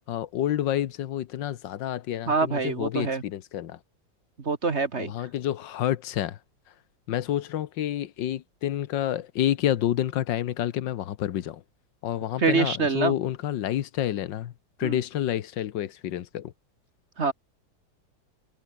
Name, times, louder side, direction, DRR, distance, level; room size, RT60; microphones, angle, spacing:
voice 1, 0.1-3.8 5.0-6.4 7.1-11.6 12.0-14.5 14.8-16.5, left 11 dB, 75° left, 1.6 m, -29 dB
voice 2, 2.3-3.2 4.4-5.1 12.4-13.1 14.8-15.0 17.2-17.3, right 4 dB, 40° right, 1.7 m, -25 dB
omnidirectional pair, 2.0 m